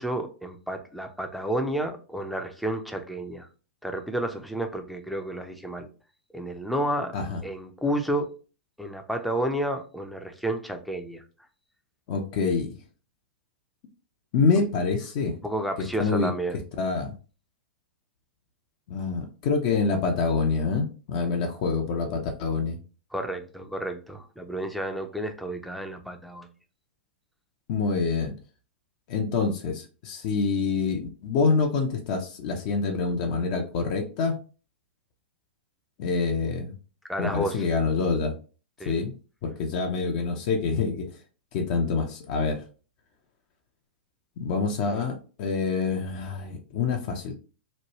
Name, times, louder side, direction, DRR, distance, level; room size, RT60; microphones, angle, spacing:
voice 1, 0.0-3.5 3.8-5.9 6.3-7.2 7.4-8.3 8.8-11.2 15.4-16.6 23.1-26.5 37.1-37.6 38.8-38.9, right 1 dB, ahead, 4 dB, 0.5 m, -31 dB
voice 2, 12.1-12.8 14.3-15.4 16.0-16.3 16.8-17.1 18.9-22.8 27.7-28.3 29.1-34.4 36.0-36.7 37.2-38.3 38.9-39.1 39.4-41.1 41.5-42.6 44.4-47.3, left 4 dB, 45° left, 4 dB, 0.5 m, -26 dB
3.1 x 2.2 x 2.9 m, 0.36 s
figure-of-eight pair, 105°, 6 cm